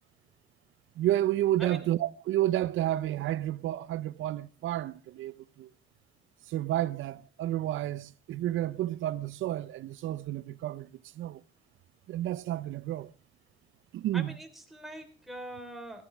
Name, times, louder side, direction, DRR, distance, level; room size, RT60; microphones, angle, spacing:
voice 1, 1.0-5.3 5.6-5.7 6.5-10.9 11.2-11.4 12.1-13.1 13.9-14.3, right 13 dB, 80° right, 0.7 m, -30 dB
voice 2, 14.1-16.0, right 1 dB, ahead, 3.8 m, -43 dB
17.5 x 14.5 x 3.4 m
cardioid pair, 90°, 20 cm